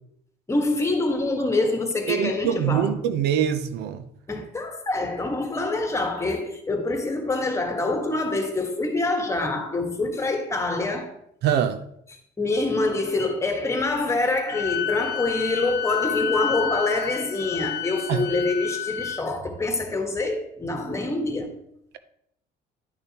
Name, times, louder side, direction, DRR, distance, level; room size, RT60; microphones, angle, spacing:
voice 1, 0.5-3.0 4.3-11.2 12.4-21.6, left 2 dB, 15° left, 1.5 m, -25 dB
voice 2, 2.1-4.0 11.4-11.8 18.1-18.3, right 9 dB, 80° right, 0.7 m, -23 dB
Wind instrument woodwind instrument, 14.5-19.2, left 9 dB, 75° left, 0.7 m, -30 dB
11.0 x 6.6 x 3.0 m
cardioid pair, 110°, 17 cm